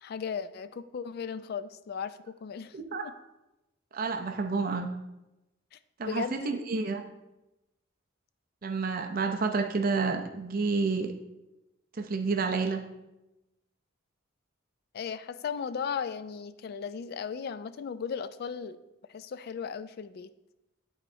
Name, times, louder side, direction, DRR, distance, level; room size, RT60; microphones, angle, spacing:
voice 1, 0.0-2.8 3.0-3.1 5.7-5.8 6.0-6.6 14.9-18.8 19.1-20.3, left 6 dB, 50° left, 14 dB, 0.3 m, -36 dB
voice 2, 2.7-3.1 3.9-4.9 6.0-7.0 8.6-11.1 12.0-12.8, right 4 dB, 45° right, 5 dB, 0.5 m, -29 dB
11.0 x 4.3 x 2.7 m, 0.96 s
head